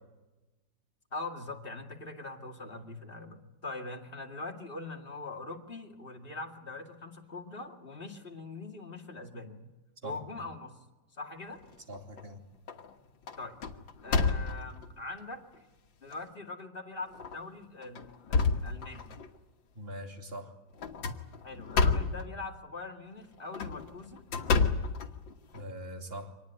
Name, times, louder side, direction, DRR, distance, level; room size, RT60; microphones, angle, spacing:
voice 1, 1.1-9.6 10.0-10.7 11.2-11.6 13.4-13.5 14.0-15.4 16.0-19.1 21.4-24.2, left 3 dB, 30° left, 2 dB, 2.4 m, -42 dB
sound 1, 11.6-12.2 12.7-12.9 13.3-14.8 15.5-15.6 16.1-16.2 17.1-17.4 17.8-19.3 20.8-22.3 23.4-25.6, left 4 dB, 85° left, 2.2 m, -29 dB
voice 2, 11.9-12.4 19.7-20.5 25.5-26.3, equal, 30° right, 3 dB, 2.9 m, -42 dB
25.5 x 19.5 x 9.3 m, 1.1 s
omnidirectional pair, 2.0 m